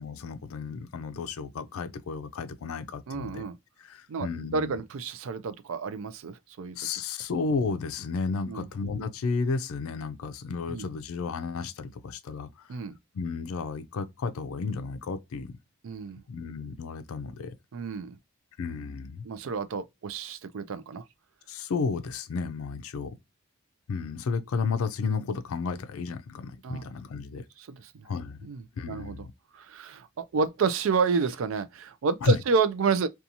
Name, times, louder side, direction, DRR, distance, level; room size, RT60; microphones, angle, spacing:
voice 1, 0.0-3.5 3.8-4.8 6.8-12.8 13.1-15.5 16.3-17.5 18.6-19.2 21.5-23.1 23.9-27.4 28.0-28.4 28.7-29.3 32.2-32.4, left 4 dB, 80° left, 0.4 m, -32 dB
voice 2, 3.1-3.6 4.1-6.8 8.4-8.7 10.7-10.9 12.7-13.0 15.8-16.2 17.7-18.2 19.2-21.0 26.6-26.8 27.6-28.1 28.4-29.3 29.5-33.1, right 5 dB, 70° right, 0.4 m, -30 dB
2.5 x 2.3 x 2.7 m
head